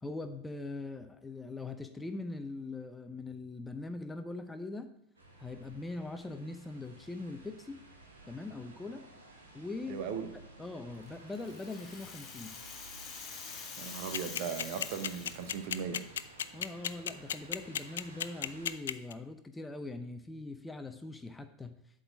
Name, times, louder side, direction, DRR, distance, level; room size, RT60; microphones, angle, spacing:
voice 1, 0.0-4.9 5.4-7.8 8.3-9.1 9.5-10.0 10.6-12.6 16.5-21.8, left 2 dB, 10° left, 9 dB, 0.6 m, -42 dB
sound 1, 5.1-18.7, right 1 dB, 85° right, 1.5 m, -55 dB
voice 2, 9.9-10.3 13.8-16.0, right 7 dB, 55° right, 8 dB, 0.9 m, -38 dB
Rattle (instrument), 11.1-15.8, left 5 dB, 30° left, 1.2 m, -46 dB
sound 2, 14.1-19.1, left 9 dB, 70° left, 0.3 m, -33 dB
7.8 x 3.9 x 6.2 m, 0.78 s
figure-of-eight pair, 85°, 0 cm